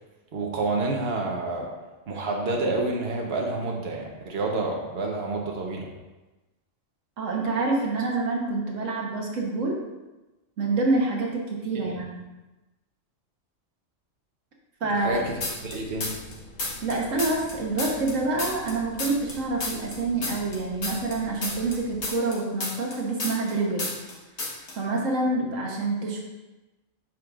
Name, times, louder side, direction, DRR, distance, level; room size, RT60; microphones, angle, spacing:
voice 1, 0.3-1.7 2.1-5.9 14.8-16.2, right 2 dB, 55° right, 0 dB, 1.2 m, -29 dB
voice 2, 7.2-9.8 10.6-12.2 14.8-15.2 16.8-23.9 24.7-26.2, right 3 dB, 85° right, -1 dB, 1.5 m, -27 dB
sound 1, 15.0-22.1, left 2 dB, 40° left, 0.8 m, -46 dB
sound 2, 15.4-16.3 16.6-19.4 19.6-23.5 23.8-24.1 24.4-24.7, left 2 dB, 60° left, 1.6 m, -31 dB
8.8 x 6.2 x 2.5 m, 1.1 s
omnidirectional pair, 1.3 m